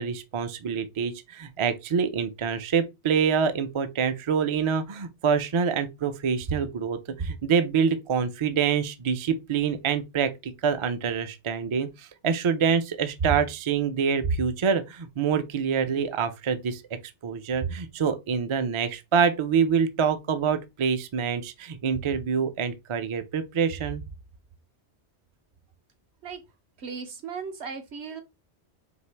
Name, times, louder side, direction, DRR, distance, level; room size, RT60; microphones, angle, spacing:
voice 1, 0.0-16.8 17.2-24.0, right 6 dB, 50° right, 0.3 m, -26 dB
voice 2, 26.8-28.2, right 5 dB, 70° right, 1.2 m, -36 dB
4.4 x 2.9 x 3.2 m
omnidirectional pair, 1.2 m